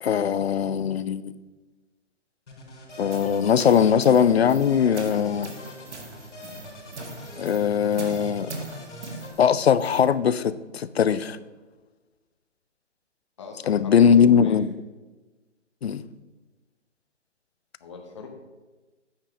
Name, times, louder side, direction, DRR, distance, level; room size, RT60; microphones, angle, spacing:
voice 1, 0.0-1.4 3.0-5.5 7.4-8.5 9.4-11.4 13.7-14.7 15.8-16.0, left 7 dB, 60° left, 16 dB, 0.5 m, -20 dB
sound 1, 2.5-9.3, left 1 dB, 75° left, 3.0 m, -43 dB
sound 2, 2.9-10.1, right 2 dB, 70° right, 1.7 m, -41 dB
voice 2, 13.4-14.6 17.8-18.3, left 4 dB, 25° left, 2 dB, 0.8 m, -42 dB
8.8 x 5.5 x 5.1 m, 1.2 s
hypercardioid pair, 165°, 36 cm